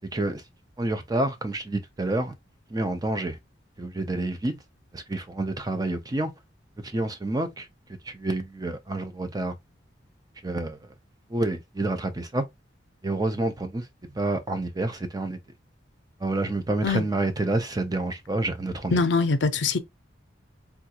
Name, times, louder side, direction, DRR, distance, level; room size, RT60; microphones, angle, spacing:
voice 1, 0.8-2.3 2.7-3.4 3.8-4.6 4.9-6.3 6.9-7.7 8.1-9.6 10.4-10.8 11.3-12.4 13.0-13.8 14.2-15.4 16.2-18.9, right 2 dB, 20° right, 0.5 m, -28 dB
voice 2, 18.9-19.8, left 3 dB, 70° left, 0.6 m, -23 dB
3.6 x 2.4 x 2.8 m
head